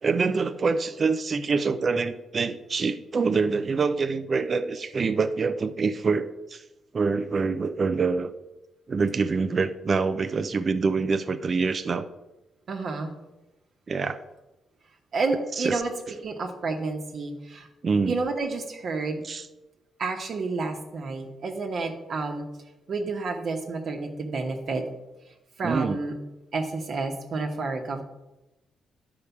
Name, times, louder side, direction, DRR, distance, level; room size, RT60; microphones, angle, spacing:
voice 1, 0.0-6.6 6.9-8.3 8.9-12.1 13.9-14.2 15.6-15.8 17.8-18.1 19.2-19.5 25.6-26.0, right 4 dB, 35° right, 10 dB, 0.5 m, -25 dB
voice 2, 12.7-13.1 15.1-15.9 16.2-17.7 18.0-19.2 20.0-22.4 22.9-24.8 25.6-26.1 26.5-28.0, right 3 dB, 55° right, 1 dB, 1.2 m, -30 dB
10.5 x 4.9 x 7.1 m, 0.98 s
cardioid pair, 120°, 0 cm